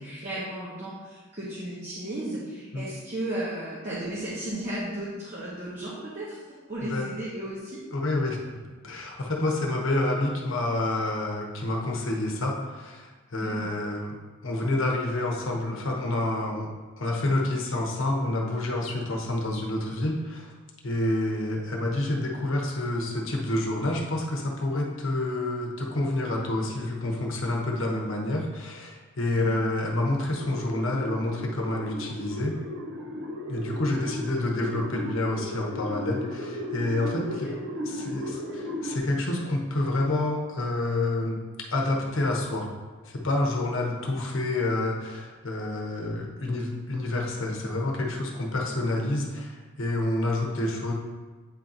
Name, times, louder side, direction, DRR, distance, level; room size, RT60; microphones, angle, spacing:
voice 1, 0.0-6.4 6.7-7.8 13.4-13.7 29.3-29.6 37.4-37.5, right 1 dB, 30° right, -9 dB, 1.1 m, -34 dB
voice 2, 7.9-8.4 8.8-14.2 14.4-20.5 20.8-32.6 33.5-37.5 37.8-41.4 41.7-42.7 43.0-50.9, left 2 dB, 65° left, 0 dB, 1.0 m, -28 dB
sound 1, 30.4-39.0, equal, 60° right, 0.6 m, -35 dB
8.5 x 2.9 x 3.8 m, 1.3 s
head